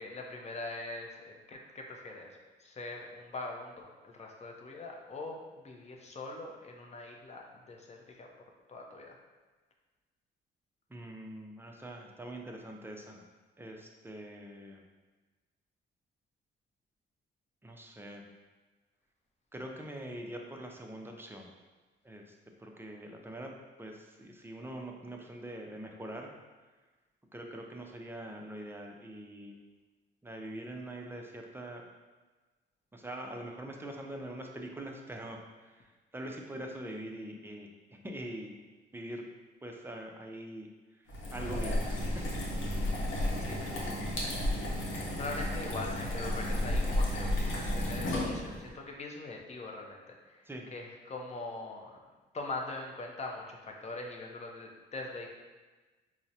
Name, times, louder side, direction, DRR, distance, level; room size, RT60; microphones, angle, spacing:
voice 1, 0.0-8.3 8.7-9.2 43.1-43.6 45.1-50.5 50.7-52.0 52.3-55.3, left 2 dB, 35° left, 1 dB, 0.6 m, -42 dB
voice 2, 10.9-13.2 13.6-14.8 17.6-18.3 19.5-21.5 22.0-23.5 23.8-26.3 27.3-29.6 30.2-31.8 32.9-38.6 38.9-39.2 39.6-42.3 42.7-43.0 43.3-44.1 50.5-50.8, right 1 dB, 10° right, 1 dB, 0.4 m, -44 dB
sound 1, 41.1-48.7, left 1 dB, 80° left, 0.8 m, -32 dB
4.6 x 2.0 x 2.7 m, 1.3 s
cardioid pair, 90°, 20 cm